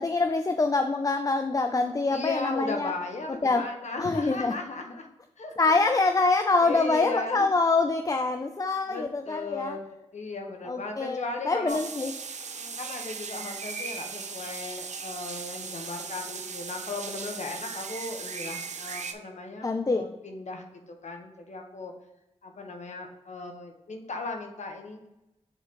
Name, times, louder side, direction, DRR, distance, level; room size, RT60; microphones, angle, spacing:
voice 1, 0.0-2.9 3.4-3.7 4.0-4.5 5.6-9.8 10.6-12.1 19.6-20.1, left 3 dB, 30° left, 7 dB, 0.4 m, -25 dB
voice 2, 1.8-5.1 5.4-5.7 6.4-7.5 8.9-11.8 12.4-21.9 22.4-25.1, left 3 dB, 80° left, 3 dB, 1.1 m, -37 dB
sound 1, 11.7-19.1, right 5 dB, 80° right, 0.6 m, -38 dB
7.1 x 4.0 x 3.6 m, 0.93 s
wide cardioid pair, 60°, 12 cm